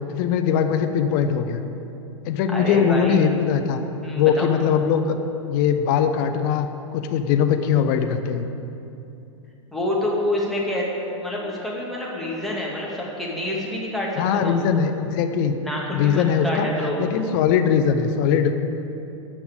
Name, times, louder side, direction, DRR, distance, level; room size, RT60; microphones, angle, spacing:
voice 1, 0.1-1.6 2.2-3.8 4.1-5.2 5.5-6.7 6.9-8.5 14.2-15.5 15.9-16.7 17.0-18.5, left 7 dB, 40° left, 7 dB, 0.9 m, -21 dB
voice 2, 2.5-3.2 4.0-4.5 9.7-10.9 11.2-14.6 15.6-17.0, left 1 dB, ahead, -5 dB, 2.3 m, -27 dB
14.0 x 5.9 x 8.2 m, 2.8 s
figure-of-eight pair, 100°, 17 cm